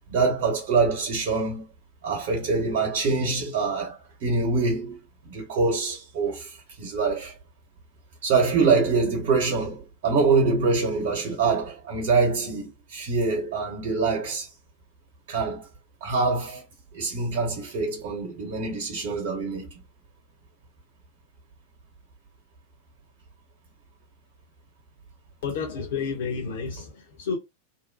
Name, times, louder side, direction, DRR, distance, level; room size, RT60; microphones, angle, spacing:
voice 1, 0.1-1.7 2.0-5.0 5.3-7.3 8.2-14.5 15.3-15.7 16.0-16.6 16.9-19.7, right 4 dB, 50° right, 0.9 m, -25 dB
voice 2, 25.4-27.4, left 5 dB, 55° left, 0.9 m, -30 dB
2.7 x 2.1 x 2.5 m
figure-of-eight pair, 90°, 0 cm